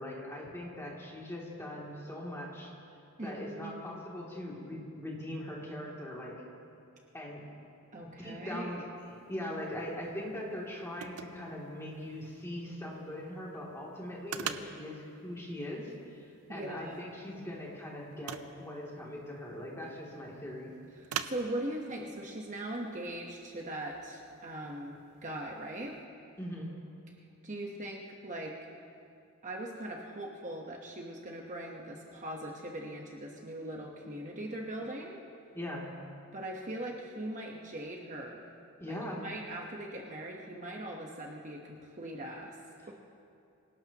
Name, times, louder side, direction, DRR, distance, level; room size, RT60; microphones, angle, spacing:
voice 1, 0.0-2.7 3.2-6.4 7.1-7.5 8.0-20.7 26.4-26.7 35.5-35.9 38.8-39.3 42.8-42.9, left 1 dB, 10° left, -4 dB, 2.7 m, -41 dB
voice 2, 3.2-4.0 7.9-8.8 16.5-17.1 21.0-26.0 27.4-28.6 29.4-35.2 36.3-38.5 38.9-42.6 42.9-43.0, right 1 dB, 35° right, 0 dB, 1.1 m, -40 dB
sound 1, 9.0-26.1, right 8 dB, 85° right, 0.7 m, -47 dB
26.0 x 17.5 x 3.0 m, 2.5 s
head